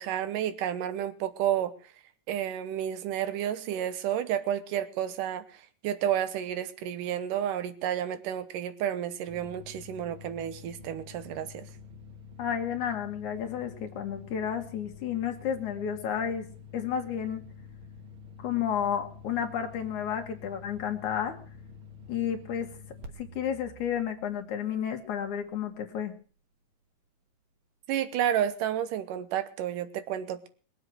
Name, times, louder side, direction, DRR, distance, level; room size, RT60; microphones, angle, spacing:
voice 1, 0.0-1.7 2.3-11.7 27.9-30.5, right 10 dB, 80° right, 12 dB, 2.6 m, -31 dB
sound 1, 9.3-25.6, left 5 dB, 55° right, 1.6 m, -48 dB
voice 2, 12.4-16.5 16.7-17.4 18.4-21.4 22.1-22.7 23.2-26.1, left 8 dB, 70° left, 4 dB, 2.6 m, -31 dB
21.5 x 7.8 x 6.3 m, 0.40 s
omnidirectional pair, 3.8 m